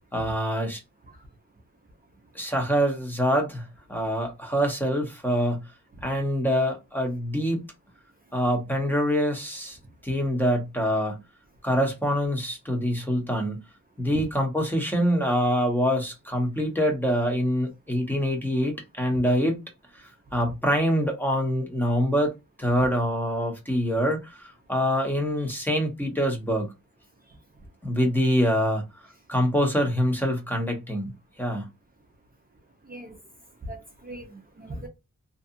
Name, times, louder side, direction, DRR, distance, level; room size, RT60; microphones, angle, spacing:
voice 1, 0.1-0.8 2.3-5.6 6.0-7.6 8.3-9.8 10.0-11.2 11.6-13.6 14.0-19.6 19.9-20.0 20.3-26.7 27.8-28.8 29.3-31.1 31.4-31.7, equal, 5° left, 1.0 m, -25 dB
voice 2, 33.6-34.9, right 1 dB, 30° right, 0.6 m, -38 dB
2.7 x 2.3 x 2.5 m
wide cardioid pair, 95°, 30 cm